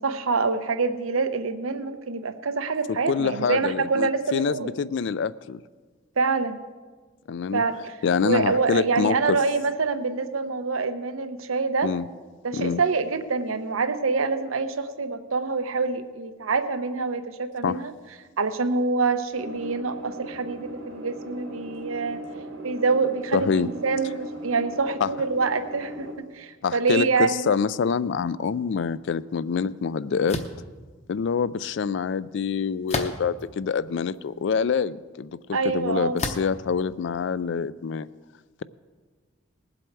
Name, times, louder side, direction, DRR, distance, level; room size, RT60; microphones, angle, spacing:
voice 1, 0.0-4.7 6.2-6.6 7.5-8.0 8.2-11.9 12.4-17.9 18.4-22.2 22.6-27.5 35.5-36.2, right 4 dB, 90° right, 10 dB, 0.8 m, -26 dB
voice 2, 3.1-5.6 7.3-7.6 8.0-9.4 11.8-12.0 12.5-12.8 17.6-17.8 23.3-23.7 25.0-25.1 26.6-30.4 31.1-38.1, left 6 dB, 60° left, 18 dB, 0.3 m, -26 dB
sound 1, 19.3-26.1, right 1 dB, 75° right, 1.7 m, -39 dB
sound 2, 30.3-30.6 32.9-33.4 34.1-34.2 36.2-36.6, left 3 dB, 30° left, 0.8 m, -30 dB
19.5 x 7.7 x 4.6 m, 1.4 s
head